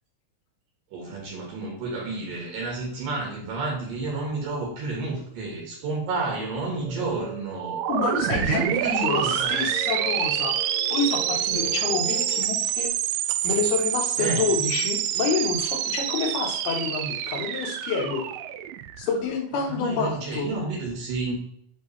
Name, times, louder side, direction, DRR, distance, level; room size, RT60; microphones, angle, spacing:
voice 1, 0.9-7.8 8.3-9.6 14.2-14.5 19.5-21.3, right 3 dB, 65° right, -1 dB, 3.0 m, -31 dB
sound 1, 6.7-12.4, equal, 5° left, 0.8 m, -40 dB
sound 2, 7.6-19.3, right 11 dB, 85° right, 1.9 m, -27 dB
voice 2, 7.9-12.9 13.4-18.4 19.0-20.5, left 4 dB, 80° left, 3 dB, 3.1 m, -28 dB
7.7 x 5.3 x 3.2 m, 0.66 s
omnidirectional pair, 4.5 m